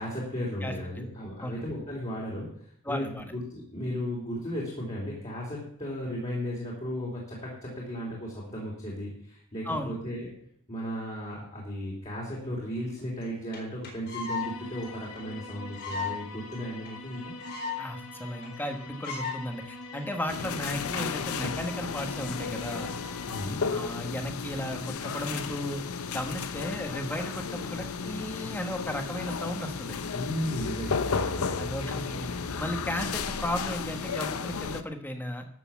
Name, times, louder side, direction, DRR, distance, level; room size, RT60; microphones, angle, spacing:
voice 1, 0.0-10.3 10.7-17.3 23.3-23.6 30.1-31.7, equal, 30° left, -4 dB, 3.5 m, -35 dB
voice 2, 0.6-1.0 1.4-1.6 2.8-3.3 9.6-9.9 17.8-22.9 23.7-25.8 26.1-29.9 31.6-32.3 32.6-35.5, equal, 10° left, 5 dB, 1.4 m, -35 dB
sound 1, 13.2-13.3 13.5-13.6 13.8-14.5 14.8-14.9 15.2-15.3 15.7-16.2 16.5-16.6 16.9-17.0 17.1-17.8 18.1-18.2 18.4-18.7 19.0-19.4 20.0-20.3, left 6 dB, 50° left, 4.0 m, -34 dB
sound 2, 14.4-23.5, left 3 dB, 70° left, 1.4 m, -44 dB
sound 3, 20.3-34.8, left 5 dB, 90° left, 0.8 m, -33 dB
13.0 x 6.9 x 7.3 m, 0.66 s
head